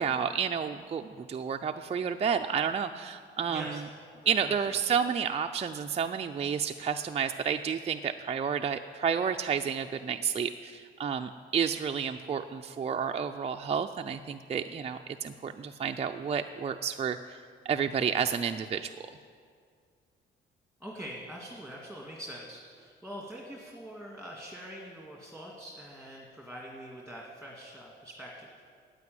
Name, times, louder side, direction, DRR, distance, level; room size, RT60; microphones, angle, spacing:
voice 1, 0.0-3.8 4.3-17.4 17.7-18.9, right 7 dB, 30° right, 5 dB, 0.5 m, -31 dB
voice 2, 3.5-3.8 4.2-4.8 20.8-28.5, equal, ahead, -3 dB, 2.0 m, -44 dB
9.4 x 8.2 x 9.3 m, 2.1 s
cardioid pair, 90°, 20 cm